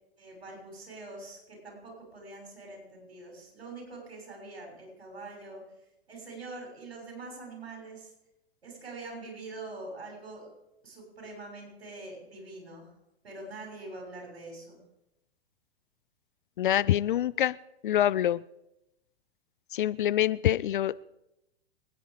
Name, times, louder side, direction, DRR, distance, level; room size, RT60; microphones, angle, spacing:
voice 1, 0.2-5.6 6.1-8.1 8.6-10.5 10.8-12.9 13.2-14.8, right 2 dB, 65° right, 1 dB, 6.7 m, -44 dB
voice 2, 16.6-17.6 17.8-18.4 19.7-21.0, left 11 dB, 50° left, 19 dB, 0.5 m, -25 dB
25.5 x 10.0 x 5.1 m, 0.88 s
figure-of-eight pair, 105°, 32 cm